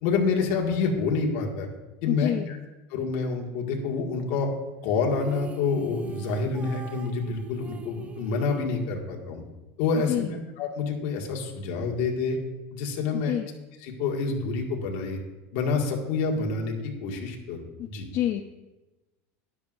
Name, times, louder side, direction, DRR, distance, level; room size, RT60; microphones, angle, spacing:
voice 1, 0.0-1.7 2.0-2.6 2.9-4.5 4.8-9.4 9.8-10.3 10.6-12.4 12.7-13.4 13.8-15.2 15.5-18.0, left 4 dB, 60° left, 1 dB, 2.0 m, -27 dB
voice 2, 2.1-2.5 10.1-10.3 13.1-13.5 17.8-18.4, left 12 dB, 40° left, 6 dB, 0.5 m, -28 dB
sound 1, 5.1-9.4, right 6 dB, 20° right, 0.5 m, -44 dB
12.5 x 11.0 x 2.6 m, 1.1 s
supercardioid pair, 150°, 7 cm